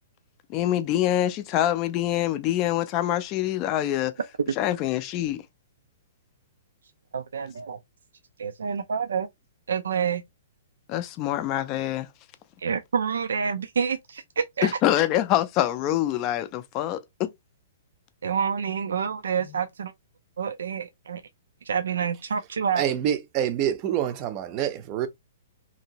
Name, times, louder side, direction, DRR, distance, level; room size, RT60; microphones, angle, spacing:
voice 1, 0.5-4.1 4.6-5.4 10.9-12.1 14.6-17.3, left 12 dB, 30° left, 0.3 m, -25 dB
voice 2, 7.1-7.8 8.4-9.3 9.7-10.2 12.6-14.7 18.2-19.9 20.4-21.2 21.6-22.9, right 6 dB, 90° right, 0.3 m, -28 dB
voice 3, 22.8-25.1, right 10 dB, 30° right, 0.5 m, -26 dB
2.8 x 2.6 x 2.8 m
hypercardioid pair, 160°, 0 cm